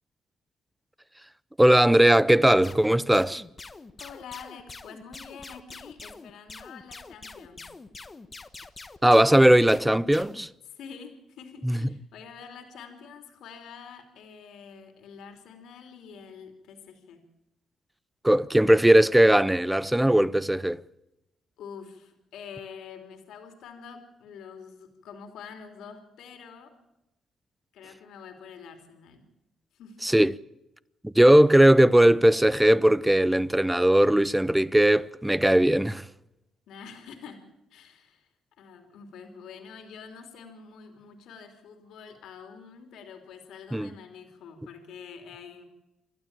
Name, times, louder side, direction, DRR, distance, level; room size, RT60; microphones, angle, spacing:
voice 1, 1.6-3.4 9.0-10.5 11.6-11.8 18.2-20.8 30.0-30.3 31.0-36.1 43.7-43.9, right 1 dB, 5° right, 0.7 m, -19 dB
sound 1, 2.6-10.5, left 3 dB, 25° left, 1.3 m, -45 dB
voice 2, 4.0-7.6 10.6-17.2 21.6-26.7 27.7-29.3 29.7-30.0 36.7-37.4 37.7-38.3 38.6-45.6, left 6 dB, 80° left, 3.2 m, -46 dB
28.5 x 12.5 x 8.9 m
cardioid pair, 90°, 0 cm